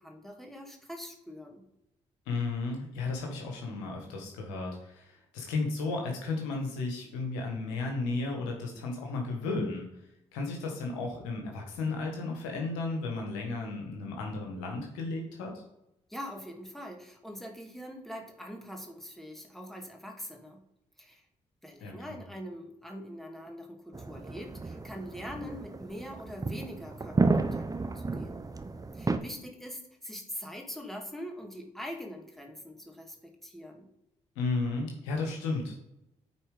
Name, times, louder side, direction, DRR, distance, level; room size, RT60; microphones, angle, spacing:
voice 1, 0.0-1.6 16.1-20.6 21.0-21.2 21.6-28.3 28.9-33.9, equal, ahead, 1 dB, 2.3 m, -43 dB
voice 2, 2.3-9.9 10.3-15.5 21.8-22.2 34.3-35.8, left 3 dB, 90° left, 1 dB, 1.6 m, -34 dB
sound 1, 23.9-29.2, right 3 dB, 25° right, 0.9 m, -32 dB
9.1 x 4.3 x 5.0 m, 0.86 s
hypercardioid pair, 50°, 15 cm